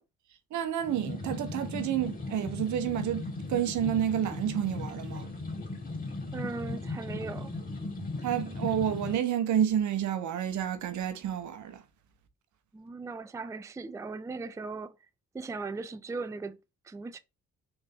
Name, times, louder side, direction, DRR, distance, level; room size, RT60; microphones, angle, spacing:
voice 1, 0.5-5.3 8.2-11.8, right 10 dB, 75° right, 0.9 m, -30 dB
sound 1, 0.8-9.1, left 2 dB, 30° left, 2.5 m, -37 dB
voice 2, 6.3-7.5 12.7-15.0 15.3-16.6 16.8-17.2, right 3 dB, 10° right, 0.4 m, -38 dB
3.9 x 3.5 x 3.5 m
cardioid pair, 90°, 30 cm